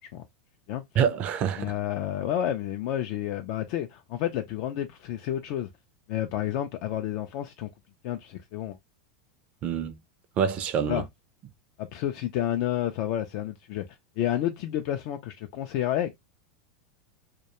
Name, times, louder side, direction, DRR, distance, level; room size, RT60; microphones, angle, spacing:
voice 1, 1.0-1.7 9.6-10.0 10.4-11.0, right 7 dB, 40° right, 0.4 m, -26 dB
voice 2, 1.6-5.7 6.1-7.7 8.0-8.8 10.9-11.0 11.8-13.8 14.2-16.2, left 11 dB, 55° left, 0.3 m, -30 dB
2.3 x 2.1 x 2.8 m
supercardioid pair, 120°, 4 cm